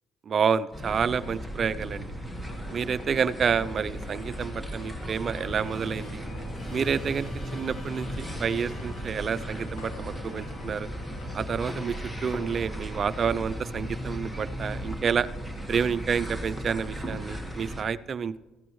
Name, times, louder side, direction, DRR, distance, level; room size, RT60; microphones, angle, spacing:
voice 1, 0.3-2.1 2.7-6.2 6.7-10.9 11.3-11.9 12.2-15.3 15.7-18.4, right 6 dB, 45° right, 16 dB, 0.4 m, -29 dB
sound 1, 0.7-17.8, equal, 10° left, 1.5 m, -37 dB
Musical instrument, 1.6-16.9, left 1 dB, 30° left, 2.8 m, -45 dB
sound 2, 2.5-12.5, left 4 dB, 80° left, 1.3 m, -51 dB
14.5 x 11.5 x 3.1 m, 1.2 s
supercardioid pair, 75°, 0 cm